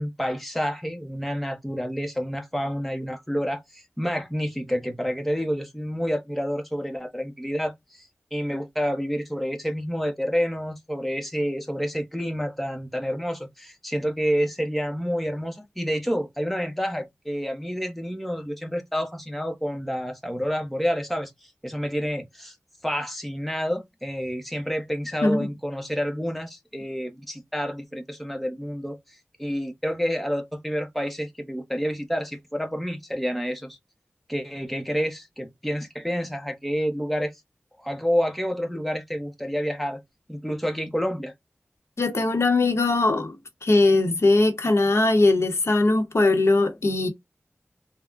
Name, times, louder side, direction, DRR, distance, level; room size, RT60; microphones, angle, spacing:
voice 1, 0.0-22.6 22.8-33.8 34.3-37.3 37.8-40.0 40.3-41.3, equal, ahead, 0.7 m, -29 dB
voice 2, 42.0-43.4 43.6-47.1, left 2 dB, 70° left, 0.8 m, -20 dB
3.5 x 2.1 x 2.3 m
wide cardioid pair, 65°, 5 cm